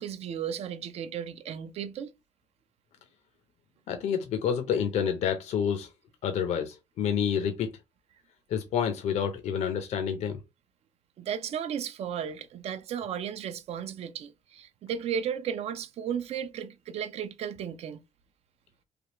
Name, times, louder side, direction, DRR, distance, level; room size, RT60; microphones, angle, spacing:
voice 1, 0.0-2.1 11.2-18.0, right 8 dB, 60° right, 0.5 m, -34 dB
voice 2, 3.9-5.9 6.2-7.7 8.5-10.4, left 8 dB, 75° left, 0.6 m, -28 dB
3.3 x 2.4 x 2.9 m
cardioid pair, 105°, 12 cm